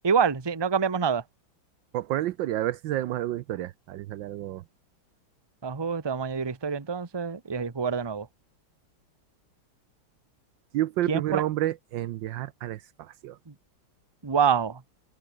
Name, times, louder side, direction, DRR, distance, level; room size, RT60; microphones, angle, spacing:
voice 1, 0.0-1.2 5.6-8.3 11.1-11.4 14.2-14.8, right 6 dB, 20° right, 0.8 m, -26 dB
voice 2, 1.9-4.6 10.7-13.4, right 14 dB, 75° right, 1.3 m, -30 dB
omnidirectional pair, 2.2 m